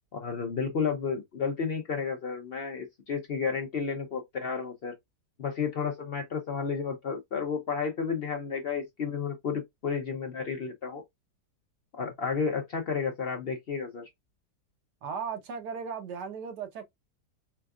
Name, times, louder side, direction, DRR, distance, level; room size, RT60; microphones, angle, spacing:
voice 1, 0.1-4.9 5.4-11.0 11.9-14.1, left 5 dB, 65° left, 0.6 m, -32 dB
voice 2, 15.0-16.9, right 6 dB, 90° right, 1.5 m, -36 dB
4.3 x 2.3 x 2.3 m
omnidirectional pair, 1.7 m